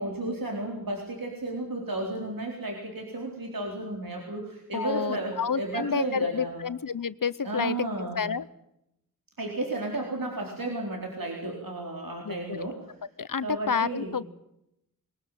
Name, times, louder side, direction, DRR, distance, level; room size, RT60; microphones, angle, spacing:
voice 1, 0.0-6.6 7.4-8.2 9.4-12.8 13.4-14.2, right 2 dB, 70° right, 0 dB, 4.2 m, -33 dB
voice 2, 4.7-8.5 12.2-12.7 13.2-14.3, left 6 dB, 65° left, 17 dB, 0.9 m, -30 dB
22.0 x 20.0 x 9.2 m, 0.82 s
wide cardioid pair, 55°, 36 cm